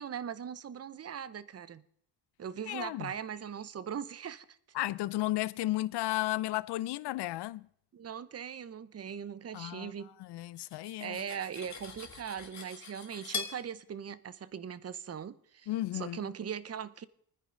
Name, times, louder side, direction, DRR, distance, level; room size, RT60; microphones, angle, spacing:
voice 1, 0.0-1.8 2.4-4.6 7.9-10.2 11.0-17.1, right 8 dB, 40° right, 0.7 m, -40 dB
voice 2, 2.6-3.1 4.7-7.7 9.5-9.9 10.2-11.2 15.7-16.2, left 16 dB, 85° left, 0.5 m, -34 dB
Cutlery silverware, 10.4-13.6, left 5 dB, 45° left, 3.0 m, -42 dB
28.0 x 9.9 x 3.8 m
cardioid pair, 115°, 40 cm